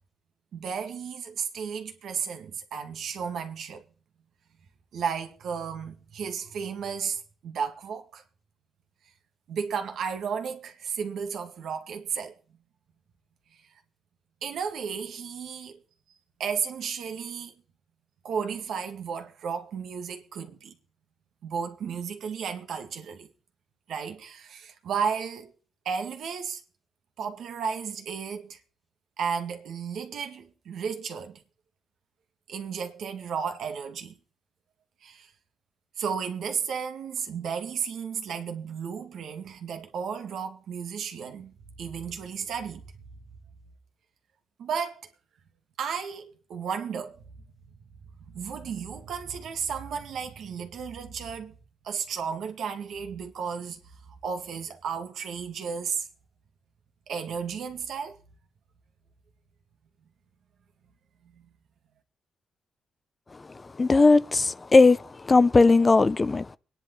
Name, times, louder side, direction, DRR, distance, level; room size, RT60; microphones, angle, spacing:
voice 1, 0.5-3.8 4.9-8.2 9.5-12.3 14.4-15.8 16.4-17.5 18.2-20.8 21.4-23.3 23.9-25.5 25.9-26.6 27.2-28.6 29.2-31.4 32.5-34.2 35.0-35.3 36.0-42.8 44.6-45.1 45.8-47.2 48.3-51.5 51.8-53.8 54.1-56.1 57.1-58.2, right 6 dB, 80° right, 2.1 m, -33 dB
voice 2, 63.3-66.6, left 3 dB, 30° left, 0.6 m, -19 dB
25.0 x 10.0 x 4.0 m
cardioid pair, 95°, 0 cm